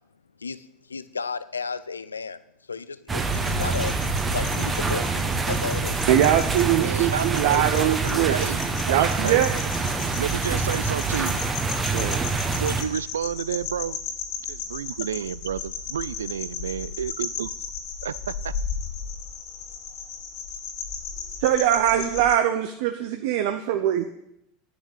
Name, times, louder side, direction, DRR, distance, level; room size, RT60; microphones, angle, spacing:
voice 1, 0.4-2.4 2.7-3.9 4.3-6.0, left 5 dB, 80° left, 16 dB, 0.5 m, -33 dB
sound 1, 3.1-12.8, right 4 dB, 20° right, 1.3 m, -26 dB
sound 2, 3.2-22.4, left 6 dB, 50° left, 2.6 m, -35 dB
voice 2, 6.1-8.3 8.9-9.5 11.9-12.4 21.4-24.0, right 11 dB, 60° right, 7 dB, 0.8 m, -22 dB
voice 3, 6.8-9.4 10.2-11.4 12.6-14.0 14.5-17.5 18.0-18.2 18.4-18.5, right 8 dB, 75° right, 19 dB, 0.3 m, -30 dB
9.6 x 6.6 x 8.6 m, 0.80 s
figure-of-eight pair, 75°, 0 cm